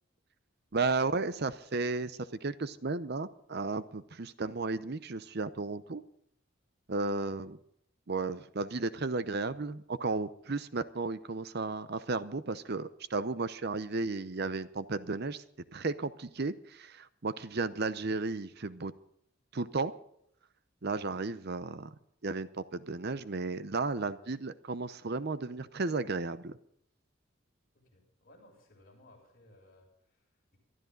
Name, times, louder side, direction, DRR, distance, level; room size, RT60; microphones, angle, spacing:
voice 1, 0.7-6.0 6.9-7.6 8.1-15.4 15.7-18.9 19.5-19.9 20.8-21.9 22.2-26.6, right 3 dB, 50° right, 14 dB, 0.7 m, -34 dB
voice 2, 27.7-30.6, left 1 dB, 45° left, -2 dB, 7.2 m, -61 dB
23.0 x 13.0 x 3.9 m, 0.71 s
head